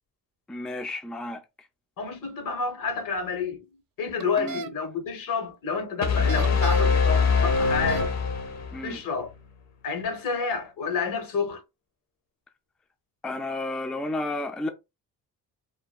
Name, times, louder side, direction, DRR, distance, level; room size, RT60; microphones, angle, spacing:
voice 1, 0.5-1.4 4.4-4.6 8.7-9.0 13.2-14.7, left 2 dB, 5° left, 0.3 m, -32 dB
voice 2, 2.0-3.6 4.0-8.1 8.8-9.3 9.8-11.6, left 5 dB, 75° left, 1.1 m, -29 dB
sound 1, 4.2-4.7 6.1-7.0 7.6-8.1, right 7 dB, 75° right, 0.5 m, -37 dB
sound 2, 6.0-8.9, left 5 dB, 50° left, 0.7 m, -23 dB
3.2 x 2.2 x 2.4 m
cardioid pair, 115°, 34 cm